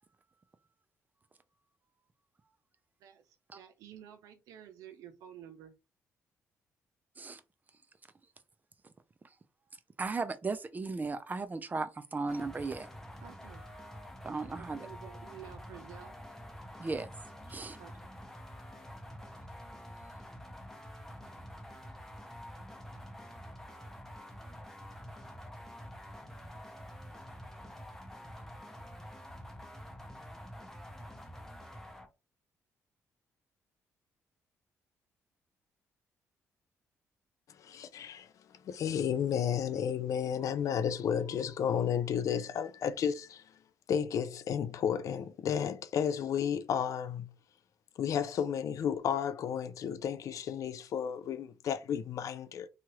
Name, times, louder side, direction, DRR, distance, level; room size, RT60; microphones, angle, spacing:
voice 1, 3.5-5.7 13.2-13.6 14.5-16.2 17.8-17.9, right 10 dB, 85° right, 0.6 m, -51 dB
voice 2, 10.0-12.9 14.2-14.9 16.8-17.1 17.5-17.8, right 3 dB, 30° right, 0.5 m, -36 dB
sound 1, 12.3-32.1, equal, 5° left, 0.8 m, -48 dB
voice 3, 37.6-38.3 38.6-43.4 43.9-47.3 48.0-52.7, left 8 dB, 65° left, 0.4 m, -32 dB
2.8 x 2.4 x 3.0 m
cardioid pair, 75°, 6 cm